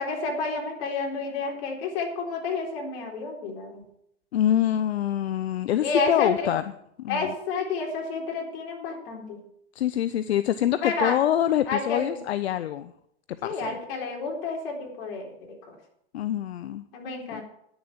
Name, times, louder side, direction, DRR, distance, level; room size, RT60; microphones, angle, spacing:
voice 1, 0.0-3.8 5.8-6.5 7.1-9.4 10.8-11.1 11.7-12.2 13.4-15.3 15.7-15.8 16.9-17.4, left 4 dB, 65° left, 0 dB, 4.0 m, -30 dB
voice 2, 4.3-6.6 7.0-7.3 9.8-12.9 13.4-13.8 16.1-16.8 17.3-17.4, left 11 dB, 85° left, 13 dB, 0.6 m, -25 dB
11.0 x 7.1 x 7.7 m, 0.75 s
hypercardioid pair, 100°, 31 cm